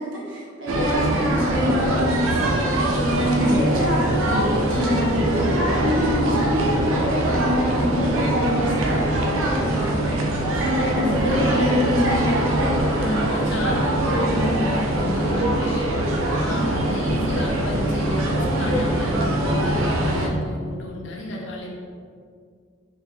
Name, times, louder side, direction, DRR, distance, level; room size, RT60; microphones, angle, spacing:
voice 1, 0.0-9.1 9.4-12.7 16.4-16.7, equal, 70° right, -5 dB, 0.9 m, -26 dB
sound 1, 0.7-20.3, right 1 dB, 85° right, 0.4 m, -22 dB
voice 2, 3.3-3.6 4.7-5.1 11.0-11.8 13.0-15.9 16.4-21.7, left 1 dB, 65° left, -1 dB, 0.6 m, -30 dB
2.9 x 2.8 x 3.5 m, 2.1 s
head